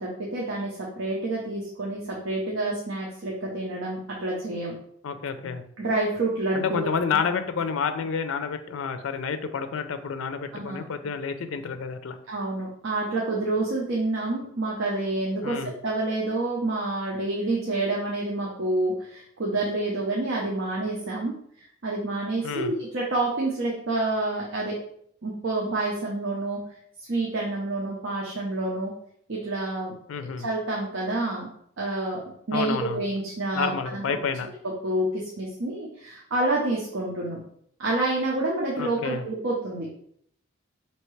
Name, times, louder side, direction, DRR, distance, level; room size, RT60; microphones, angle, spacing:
voice 1, 0.0-4.7 5.8-6.8 10.5-10.8 12.3-21.3 21.8-24.7 25.2-26.6 27.1-28.9 29.3-29.9 30.4-31.5 31.8-32.2 32.5-34.2 34.8-37.4 37.8-39.9, right 2 dB, 70° right, -3 dB, 0.7 m, -28 dB
voice 2, 5.0-5.6 6.5-12.2 15.4-15.7 22.4-22.7 30.1-30.5 32.5-33.1 33.5-34.5 38.8-39.3, left 6 dB, 80° left, 9 dB, 0.4 m, -29 dB
4.4 x 2.8 x 3.2 m, 0.67 s
head